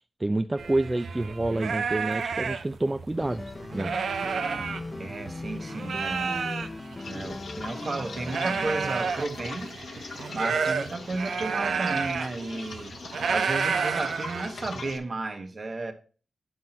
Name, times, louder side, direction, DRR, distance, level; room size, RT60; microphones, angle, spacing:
voice 1, 0.0-3.4 3.7-3.9, right 2 dB, 25° right, 0.4 m, -28 dB
sound 1, 0.6-5.4 5.7-14.9, right 5 dB, 85° right, 0.6 m, -31 dB
sound 2, 3.2-9.1, left 2 dB, 35° left, 0.7 m, -39 dB
voice 2, 5.0-6.5 7.1-9.8 10.3-13.0 13.3-15.9, right 3 dB, 50° right, 1.2 m, -33 dB
sound 3, 7.0-15.0, left 4 dB, 75° left, 0.9 m, -41 dB
9.4 x 4.1 x 4.3 m
cardioid pair, 50°, 0 cm